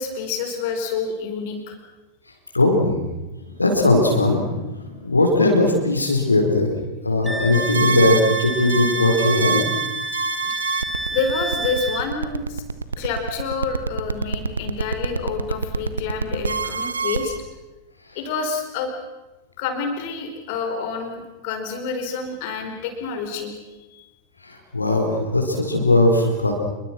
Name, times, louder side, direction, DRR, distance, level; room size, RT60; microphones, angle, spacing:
voice 1, 0.0-1.8 10.4-10.6 11.1-12.6 13.0-17.4 18.1-18.9 19.6-23.5 23.9-24.1, left 5 dB, 50° left, 5 dB, 4.7 m, -28 dB
voice 2, 2.5-3.0 3.6-6.7 7.0-9.6 24.4-26.5, left 2 dB, 80° left, 2 dB, 4.6 m, -19 dB
Wind instrument woodwind instrument, 7.2-12.0, right 2 dB, 5° right, 1.9 m, -29 dB
sound 1, 7.5-17.4, right 4 dB, 75° right, 1.2 m, -26 dB
27.0 x 23.5 x 6.2 m, 1.1 s
figure-of-eight pair, 90°, 0 cm